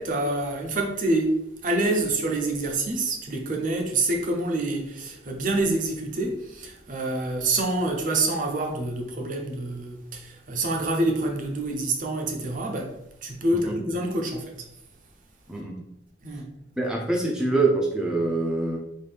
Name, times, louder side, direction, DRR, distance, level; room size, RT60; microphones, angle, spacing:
voice 1, 0.0-14.7 16.2-16.5, right 2 dB, 45° right, 0.7 m, -27 dB
voice 2, 16.8-18.8, right 2 dB, 5° right, 0.6 m, -25 dB
4.4 x 2.7 x 3.4 m
head